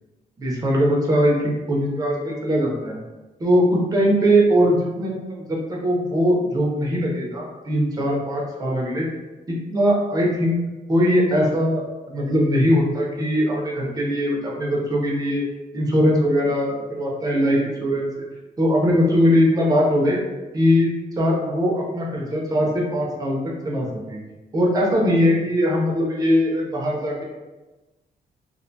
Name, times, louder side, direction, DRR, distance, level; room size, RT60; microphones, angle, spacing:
voice 1, 0.4-3.0 3.4-9.1 9.5-10.6 10.9-11.8 12.1-15.4 15.7-18.1 18.6-20.2 20.5-20.9 21.2-23.4 23.6-24.2 24.5-27.2, equal, 25° right, -2 dB, 0.4 m, -20 dB
2.4 x 2.2 x 2.6 m, 1.1 s
wide cardioid pair, 160°, 16 cm